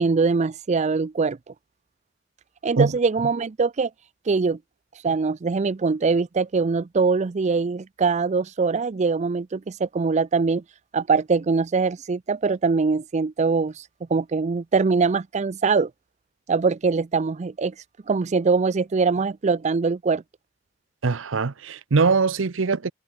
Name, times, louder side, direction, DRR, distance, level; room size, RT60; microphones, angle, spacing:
voice 1, 0.0-1.4 2.6-3.9 4.3-4.6 5.0-10.6 10.9-15.9 16.5-17.7 18.1-20.2, right 4 dB, 35° right, 0.4 m, -22 dB
voice 2, 21.0-22.9, right 4 dB, 80° right, 0.7 m, -22 dB
head